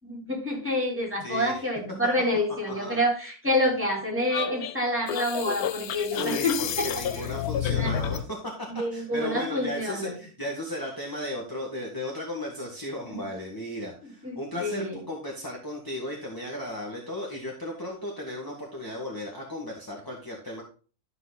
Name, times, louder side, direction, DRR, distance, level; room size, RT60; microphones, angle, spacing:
voice 1, 0.0-7.3 7.8-7.9 8.7-10.1 13.1-13.2 14.0-15.0, left 1 dB, 10° right, -1 dB, 3.9 m, -28 dB
voice 2, 1.2-1.6 2.7-3.0 6.1-20.6, left 1 dB, 15° left, -1 dB, 1.8 m, -35 dB
sound 1, 4.3-8.3, left 9 dB, 85° left, 1.2 m, -30 dB
12.5 x 6.0 x 4.0 m, 0.37 s
omnidirectional pair, 1.5 m